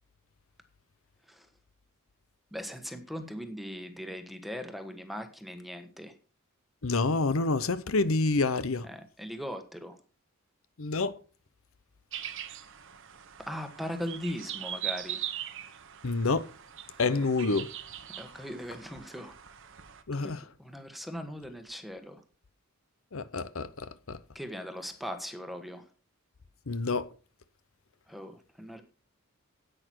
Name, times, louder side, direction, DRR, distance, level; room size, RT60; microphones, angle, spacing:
voice 1, 2.5-6.2 8.8-10.0 13.4-15.2 17.1-17.2 18.2-19.4 20.2-22.2 24.3-25.9 28.1-28.8, equal, ahead, 1.3 m, -39 dB
voice 2, 6.8-8.9 10.8-11.1 16.0-16.4 17.0-17.7 20.1-20.4 23.1-24.2 26.7-27.1, left 3 dB, 65° left, 0.8 m, -28 dB
sound 1, 12.1-20.0, right 10 dB, 60° right, 1.1 m, -41 dB
10.5 x 8.9 x 4.6 m
head